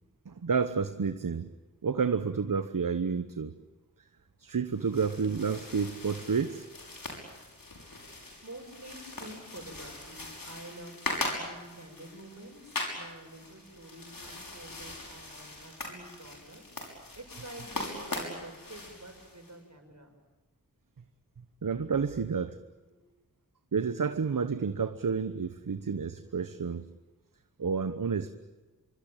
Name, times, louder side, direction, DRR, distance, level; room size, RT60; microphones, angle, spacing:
voice 1, 0.3-1.5 1.8-3.5 4.4-6.7 21.6-22.6 23.7-26.9 27.6-28.3, right 5 dB, 75° right, 11 dB, 1.0 m, -30 dB
sound 1, 4.7-19.5, left 2 dB, 85° left, 6.3 m, -41 dB
voice 2, 8.4-16.6 16.9-20.2, right 1 dB, 55° right, 4 dB, 6.7 m, -48 dB
25.5 x 24.0 x 9.0 m, 1.2 s
wide cardioid pair, 50°, 33 cm